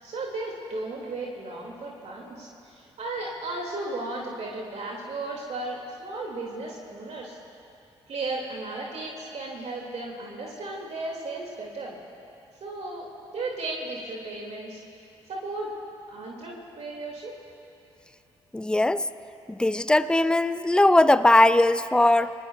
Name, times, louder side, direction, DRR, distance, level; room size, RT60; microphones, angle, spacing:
voice 1, 0.0-7.4 8.1-12.0 12.6-13.1 13.3-14.8 15.3-15.7 16.1-17.3, right 2 dB, 50° right, -1 dB, 2.3 m, -35 dB
voice 2, 18.5-19.0 19.5-22.3, left 1 dB, 5° left, 14 dB, 0.5 m, -20 dB
30.0 x 19.0 x 2.3 m, 2.7 s
figure-of-eight pair, 45°, 15 cm